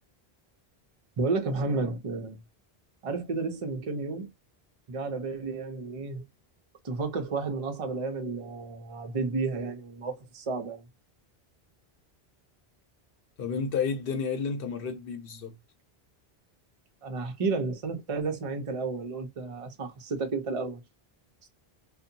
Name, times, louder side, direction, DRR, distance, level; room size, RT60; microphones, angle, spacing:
voice 1, 1.2-2.4 3.0-4.3 4.9-6.2 6.8-10.8 17.0-20.8, right 3 dB, 40° right, 0.6 m, -32 dB
voice 2, 13.4-15.6, left 5 dB, 65° left, 0.8 m, -31 dB
2.7 x 2.2 x 2.6 m
omnidirectional pair, 1.0 m